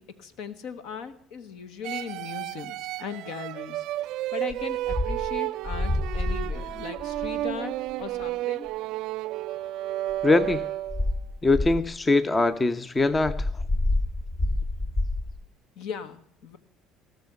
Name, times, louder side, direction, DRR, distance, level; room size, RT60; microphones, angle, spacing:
voice 1, 0.0-3.8 4.3-8.7 15.8-16.6, left 6 dB, 65° left, 12 dB, 1.1 m, -38 dB
sound 1, 1.8-11.2, right 15 dB, 65° right, 0.4 m, -32 dB
sound 2, 4.5-4.6 4.8-5.3 5.6-7.5 8.2-8.3 10.1-10.5 10.9-11.9 13.0-15.4, left 2 dB, 45° left, 2.1 m, -28 dB
voice 2, 10.2-10.6 11.4-13.4, left 3 dB, 25° left, 14 dB, 0.7 m, -22 dB
17.5 x 6.5 x 6.6 m, 0.69 s
hypercardioid pair, 60°, 0 cm